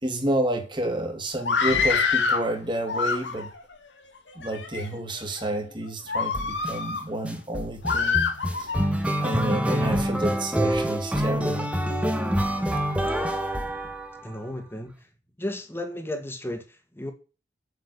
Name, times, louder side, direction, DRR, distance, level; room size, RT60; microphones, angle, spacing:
voice 1, 0.0-3.5 4.3-8.2 8.6-8.7 9.2-11.8, right 1 dB, 25° right, 2.9 m, -30 dB
Screaming, 1.4-2.5 2.9-3.6 4.3-4.9 5.4-5.6 6.1-7.1 7.8-8.9, left 5 dB, 80° left, 2.2 m, -25 dB
sound 1, 6.3-6.7 7.2-14.4, equal, 5° right, 1.4 m, -26 dB
voice 2, 14.2-15.1 15.4-17.1, left 1 dB, 15° left, 2.0 m, -34 dB
8.2 x 7.3 x 8.6 m
head